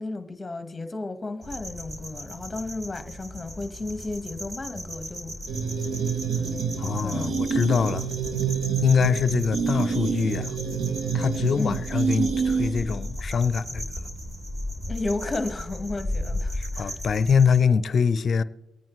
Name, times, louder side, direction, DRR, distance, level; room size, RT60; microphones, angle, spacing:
voice 1, 0.0-5.4 6.8-7.7 11.6-11.8 14.9-17.0, left 2 dB, 20° left, 1.3 m, -33 dB
sound 1, 1.4-17.6, left 1 dB, 30° right, 2.9 m, -36 dB
sound 2, 5.5-13.0, right 6 dB, 80° right, 0.9 m, -27 dB
voice 2, 6.8-8.1 8.8-10.5 11.1-13.9 16.5-18.4, left 6 dB, 45° left, 0.6 m, -23 dB
23.5 x 9.3 x 3.1 m
cardioid pair, 90°, 0 cm